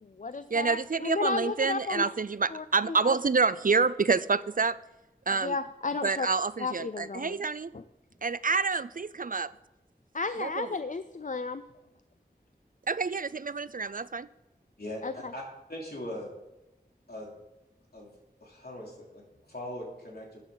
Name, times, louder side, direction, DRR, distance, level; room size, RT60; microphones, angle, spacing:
voice 1, 0.0-2.1 2.5-3.2 5.3-6.3 6.6-7.4 7.7-7.8 10.1-11.6 15.0-15.3, left 4 dB, 50° left, 12 dB, 0.4 m, -33 dB
voice 2, 0.5-4.8 5.3-5.5 6.0-7.7 8.2-9.5 10.4-10.5 12.9-14.3, right 4 dB, 55° right, 17 dB, 0.4 m, -27 dB
voice 3, 14.8-15.4 15.7-16.3 17.1-17.3 17.9-18.1 18.4-20.4, left 1 dB, 65° left, -2 dB, 3.2 m, -40 dB
13.0 x 9.4 x 3.9 m, 0.97 s
wide cardioid pair, 45°, 17 cm